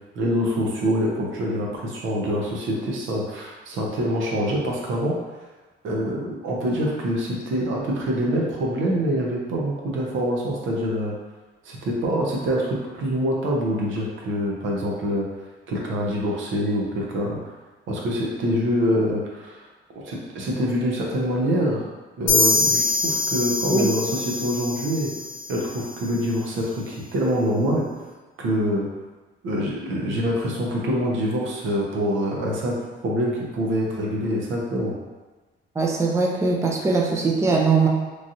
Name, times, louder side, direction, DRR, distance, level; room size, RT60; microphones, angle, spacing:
voice 1, 0.2-5.2 5.8-11.1 11.6-15.2 15.7-17.5 17.9-19.7 20.0-21.9 22.2-25.1 25.5-27.8 28.4-28.9 29.4-32.8 33.0-34.9, equal, 75° right, -2 dB, 0.7 m, -25 dB
sound 1, 22.3-25.9, left 3 dB, 90° left, 0.6 m, -24 dB
voice 2, 35.8-37.9, right 4 dB, 15° right, -1 dB, 0.4 m, -21 dB
3.1 x 2.4 x 2.7 m, 1.3 s
cardioid pair, 90°, 20 cm